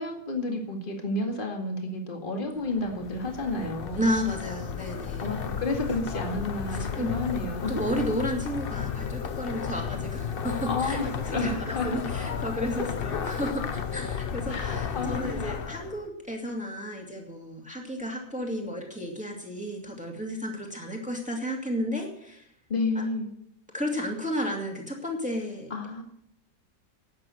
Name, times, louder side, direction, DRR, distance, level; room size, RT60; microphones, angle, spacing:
voice 1, 0.0-4.0 5.2-7.8 10.6-12.0 14.5-15.4 22.7-23.3 25.7-26.0, left 2 dB, 30° left, 2 dB, 2.2 m, -31 dB
sound 1, 2.6-16.1, left 7 dB, 45° left, 0.8 m, -33 dB
voice 2, 3.9-5.3 6.7-7.2 7.7-11.0 11.2-22.5 22.9-23.0 23.7-25.7, equal, 5° right, 0 dB, 2.4 m, -32 dB
12.0 x 9.2 x 7.7 m, 0.72 s
omnidirectional pair, 1.8 m